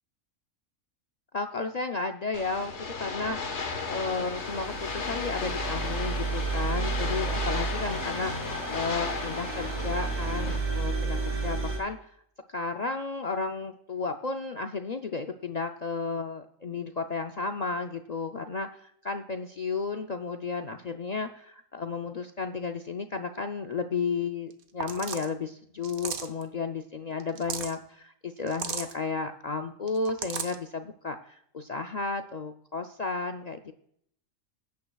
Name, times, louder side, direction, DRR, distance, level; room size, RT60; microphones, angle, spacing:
voice 1, 1.3-3.4 3.9-12.1 12.5-18.7 19.0-33.7, left 4 dB, 70° left, 5 dB, 0.4 m, -33 dB
sound 1, 2.3-10.6, left 4 dB, 55° left, 1.5 m, -35 dB
sound 2, 3.6-11.8, right 4 dB, 55° right, 3.3 m, -32 dB
sound 3, 24.5-24.6 24.8-25.3 25.8-26.4 27.2-27.7 28.5-28.9 29.9-30.6, right 6 dB, 85° right, 1.4 m, -35 dB
20.5 x 9.5 x 2.3 m, 0.69 s
omnidirectional pair, 1.4 m